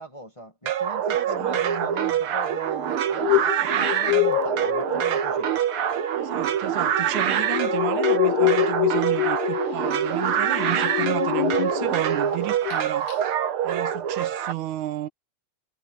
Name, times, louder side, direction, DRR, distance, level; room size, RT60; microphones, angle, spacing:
voice 1, 0.0-5.5, equal, 15° left, 1.2 m, -39 dB
sound 1, 0.7-14.5, right 9 dB, 55° right, 1.8 m, -25 dB
voice 2, 1.1-1.9 3.6-3.8 6.2-13.2 13.6-15.1, right 15 dB, 85° right, 2.3 m, -33 dB
sound 2, 3.0-12.2 12.5-12.8 13.1-13.2, left 18 dB, 80° left, 2.2 m, -27 dB
omnidirectional pair, 3.4 m